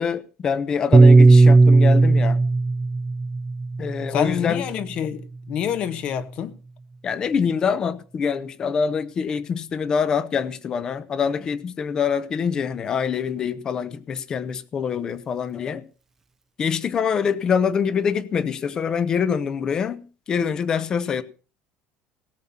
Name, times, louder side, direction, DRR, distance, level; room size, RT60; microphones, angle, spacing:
voice 1, 0.0-2.4 3.8-4.6 7.0-15.8 16.6-21.2, left 6 dB, 25° left, 0.8 m, -25 dB
Piano, 0.9-5.4, right 3 dB, 15° right, 0.5 m, -16 dB
voice 2, 4.1-6.5, left 9 dB, 45° left, 1.1 m, -27 dB
17.5 x 7.2 x 5.6 m
cardioid pair, 165°, 3 cm